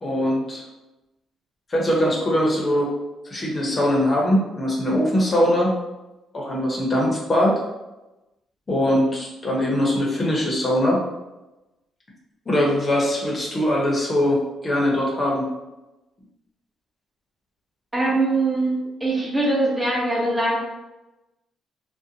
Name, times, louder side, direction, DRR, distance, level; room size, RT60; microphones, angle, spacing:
voice 1, 0.0-0.6 1.7-2.9 3.3-5.8 6.3-7.6 8.7-11.0 12.5-14.4 14.6-15.4, equal, 35° left, -3 dB, 0.7 m, -21 dB
voice 2, 17.9-18.7 19.0-20.6, right 2 dB, 20° right, -4 dB, 0.9 m, -22 dB
2.5 x 2.1 x 2.8 m, 1.0 s
supercardioid pair, 70°, 0 cm